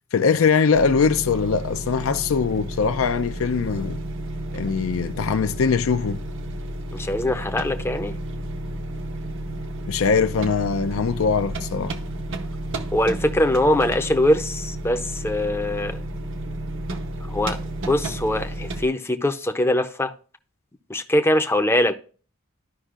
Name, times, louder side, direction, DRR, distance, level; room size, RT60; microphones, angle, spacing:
voice 1, 0.1-4.0 4.5-6.2 9.9-12.0, left 5 dB, 70° left, 0.5 m, -22 dB
sound 1, 0.7-18.9, right 1 dB, 65° right, 0.8 m, -32 dB
voice 2, 6.9-8.1 12.9-16.0 17.3-17.6 17.9-20.1 20.9-21.9, left 1 dB, 10° left, 0.6 m, -22 dB
13.0 x 5.4 x 2.4 m
head